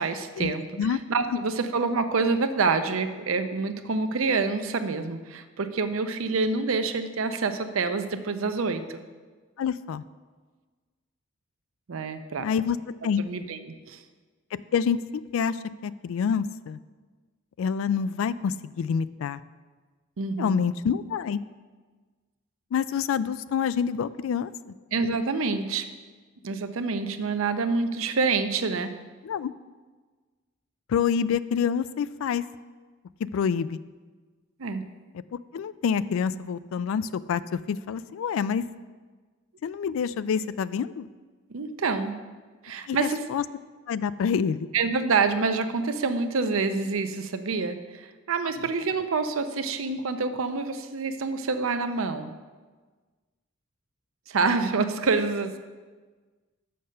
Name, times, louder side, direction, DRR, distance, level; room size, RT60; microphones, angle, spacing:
voice 1, 0.0-9.0 11.9-12.5 13.2-14.0 20.2-20.6 24.9-25.8 26.4-28.9 34.6-34.9 41.5-42.2 42.6-43.2 44.7-52.3 54.3-55.6, right 4 dB, 85° right, 8 dB, 0.6 m, -27 dB
voice 2, 9.6-10.0 12.4-12.8 13.0-13.2 14.5-15.6 15.8-16.8 17.6-19.4 20.4-21.4 22.7-24.5 29.2-29.5 30.9-32.4 33.3-33.8 35.5-38.6 39.6-41.1 42.9-43.4 43.9-44.7, left 7 dB, 80° left, 17 dB, 0.3 m, -27 dB
6.6 x 5.5 x 6.4 m, 1.4 s
head